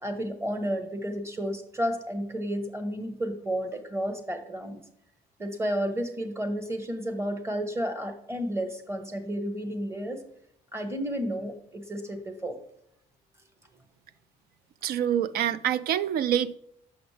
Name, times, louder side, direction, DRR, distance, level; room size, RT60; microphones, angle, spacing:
voice 1, 0.0-4.8 5.4-10.2 10.7-12.6, equal, 15° right, 8 dB, 1.0 m, -32 dB
voice 2, 14.8-16.6, right 10 dB, 65° right, 16 dB, 0.4 m, -26 dB
6.3 x 6.0 x 3.3 m, 0.74 s
cardioid pair, 110°, 17 cm